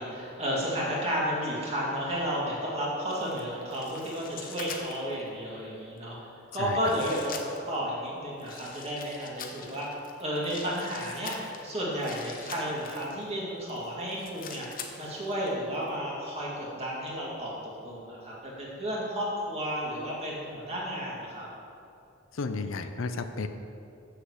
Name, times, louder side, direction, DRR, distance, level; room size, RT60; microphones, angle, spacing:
voice 1, 0.0-6.2 6.5-7.3 7.7-9.9 10.2-14.7 15.0-17.5 17.8-21.5, equal, 30° right, -5 dB, 2.2 m, -32 dB
sound 1, 3.1-5.2 6.0-6.1 6.8-7.8 8.4-13.2 13.7-15.5 15.7-15.9, left 6 dB, 45° left, 0.8 m, -44 dB
voice 2, 22.3-23.5, left 3 dB, 75° left, 9 dB, 0.5 m, -32 dB
7.6 x 6.6 x 6.3 m, 2.6 s
head